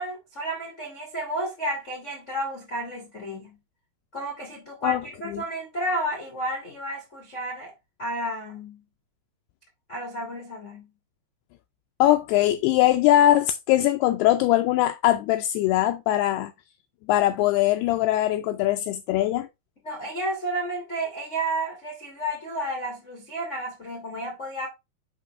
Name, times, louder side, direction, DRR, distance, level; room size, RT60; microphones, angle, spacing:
voice 1, 0.0-3.6 4.1-7.7 8.0-8.8 9.9-10.9 19.8-24.7, right 1 dB, 40° left, 1.0 m, -32 dB
voice 2, 12.0-16.5 17.1-19.5, left 13 dB, 85° left, 2.3 m, -21 dB
7.7 x 5.4 x 3.2 m
omnidirectional pair, 5.1 m